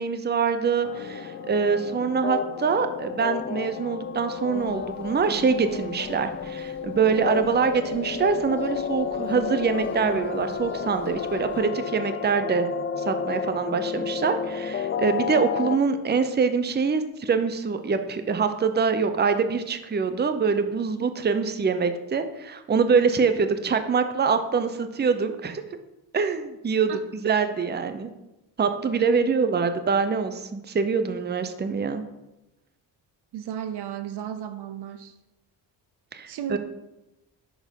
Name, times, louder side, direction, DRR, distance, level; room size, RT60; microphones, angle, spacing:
voice 1, 0.0-12.7 13.1-25.6 26.1-28.1 28.6-32.0 36.1-36.6, right 5 dB, 25° right, 9 dB, 0.6 m, -24 dB
sound 1, 0.8-15.8, left 7 dB, 30° left, 0.4 m, -31 dB
sound 2, 4.5-11.6, equal, 5° left, 1.8 m, -44 dB
voice 2, 33.3-35.1 36.3-36.6, right 9 dB, 65° right, 10 dB, 0.7 m, -34 dB
5.9 x 4.4 x 5.2 m, 0.94 s
cardioid pair, 65°, 44 cm